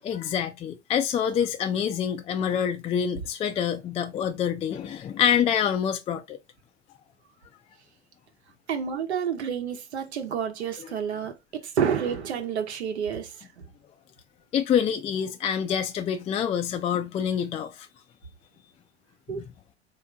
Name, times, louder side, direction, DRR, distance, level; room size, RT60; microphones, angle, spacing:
voice 1, 0.0-6.4 10.8-10.9 14.5-17.9 19.3-19.4, left 8 dB, 20° left, 0.4 m, -26 dB
voice 2, 8.7-13.7 19.3-19.4, right 7 dB, 80° right, 1.0 m, -29 dB
3.4 x 2.8 x 3.6 m
hypercardioid pair, 95°, 33 cm